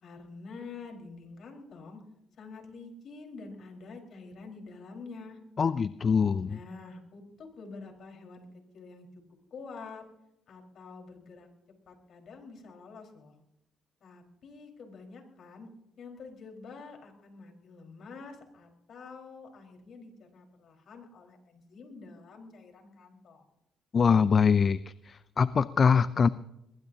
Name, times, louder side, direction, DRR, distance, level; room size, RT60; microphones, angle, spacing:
voice 1, 0.0-2.0 2.4-5.4 6.4-9.1 9.5-10.0 10.5-11.5 11.9-13.3 14.0-15.7 16.0-23.4, left 4 dB, 65° left, 2 dB, 4.8 m, -47 dB
voice 2, 5.6-6.6 23.9-24.8 25.0-26.3, left 6 dB, 45° left, 14 dB, 0.5 m, -23 dB
22.0 x 21.0 x 2.9 m, 0.83 s
cardioid pair, 90°, 0 cm